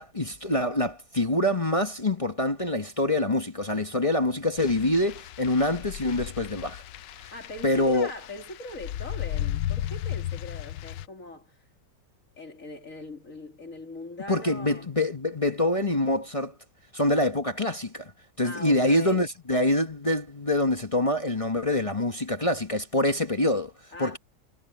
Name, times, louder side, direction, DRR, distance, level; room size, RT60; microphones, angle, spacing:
voice 1, 0.0-6.8 7.6-8.1 14.3-16.5 16.9-18.1 18.4-23.7 24.0-24.2, left 1 dB, 20° left, 1.0 m, -25 dB
sound 1, 4.6-11.1, left 12 dB, 80° left, 1.3 m, -35 dB
voice 2, 7.3-11.6 12.4-14.9 18.4-19.3 23.9-24.2, left 2 dB, 45° left, 3.4 m, -41 dB
omnidirectional pair, 2.0 m